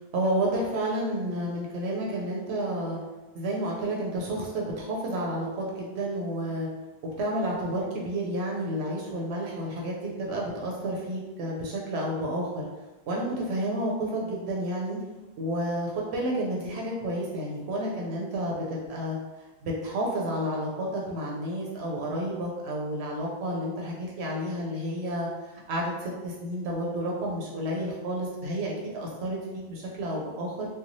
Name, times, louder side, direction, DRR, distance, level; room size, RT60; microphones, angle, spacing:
voice 1, 0.1-3.0 3.3-6.7 7.2-12.6 13.1-15.0 15.4-19.2 19.6-25.3 25.7-30.7, right 1 dB, 85° right, -3 dB, 0.8 m, -30 dB
3.0 x 2.2 x 2.6 m, 1.2 s
omnidirectional pair, 1.1 m